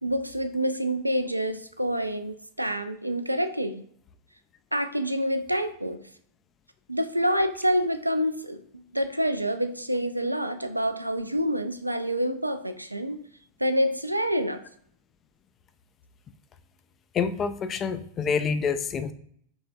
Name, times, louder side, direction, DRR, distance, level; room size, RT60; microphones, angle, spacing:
voice 1, 0.0-3.8 4.7-6.0 6.9-13.2 13.6-14.6, equal, 85° right, 9 dB, 0.3 m, -27 dB
voice 2, 17.1-19.1, left 6 dB, 25° left, 11 dB, 0.3 m, -27 dB
5.2 x 3.2 x 2.3 m, 0.65 s
figure-of-eight pair, 90°, 0 cm